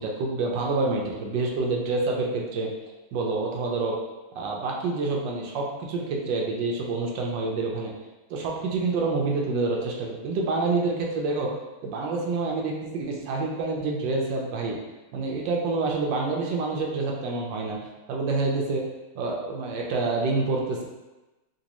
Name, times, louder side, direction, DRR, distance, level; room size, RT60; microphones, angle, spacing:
voice 1, 0.0-2.7 3.1-4.0 4.3-7.9 8.3-11.5 11.8-14.8 15.1-17.8 18.1-18.8 19.1-20.8, right 3 dB, 75° right, -1 dB, 1.3 m, -27 dB
4.0 x 2.6 x 2.9 m, 1.1 s
omnidirectional pair, 2.1 m